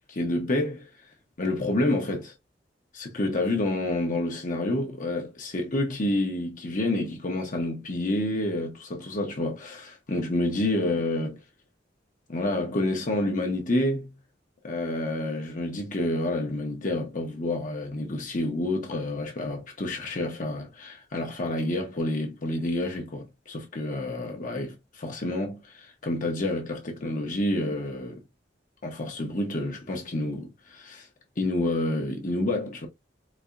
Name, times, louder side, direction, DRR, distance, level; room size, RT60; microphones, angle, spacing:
voice 1, 0.1-0.9 1.4-2.3 2.9-11.4 12.3-14.1 14.6-28.2 28.8-31.1 31.4-32.9, left 1 dB, 45° left, 0.8 m, -29 dB
4.1 x 2.7 x 2.4 m
head